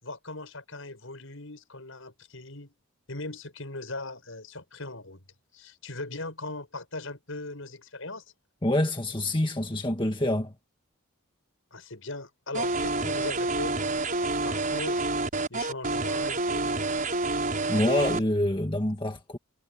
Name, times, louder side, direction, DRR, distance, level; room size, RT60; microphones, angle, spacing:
voice 1, 0.0-2.7 3.1-5.2 5.5-8.2 11.7-15.0 15.5-16.7, left 2 dB, 70° left, 6.1 m, -39 dB
voice 2, 8.6-10.5 17.7-19.4, left 1 dB, 25° left, 1.7 m, -26 dB
sound 1, 12.5-18.2, right 2 dB, 40° right, 7.2 m, -28 dB
head